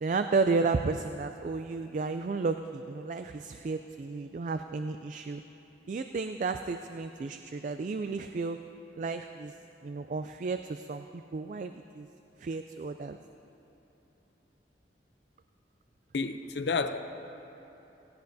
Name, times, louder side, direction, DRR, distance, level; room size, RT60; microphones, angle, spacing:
voice 1, 0.0-5.4 5.9-8.6 9.0-9.5 9.8-12.1 12.4-13.2, right 4 dB, 45° right, 8 dB, 0.3 m, -32 dB
voice 2, 16.1-17.0, left 4 dB, 65° left, 8 dB, 0.6 m, -30 dB
17.0 x 16.5 x 2.7 m, 3.0 s
head